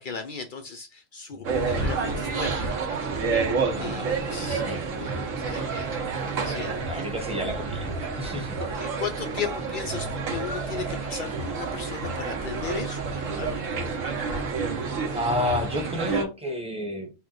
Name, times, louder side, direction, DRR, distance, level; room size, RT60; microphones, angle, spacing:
voice 1, 0.0-2.8 3.8-5.1 5.4-5.9 6.2-6.7 8.6-13.5 13.8-13.9, left 6 dB, 65° left, 4 dB, 0.5 m, -36 dB
sound 1, 1.4-16.2, right 4 dB, 75° right, 1.3 m, -29 dB
sound 2, 3.6-14.3, right 3 dB, 55° right, 1.0 m, -46 dB
voice 2, 3.7-5.1 6.8-8.6 15.1-17.1, left 1 dB, 5° right, 2 dB, 0.8 m, -31 dB
4.3 x 2.1 x 3.7 m, 0.27 s
omnidirectional pair, 1.4 m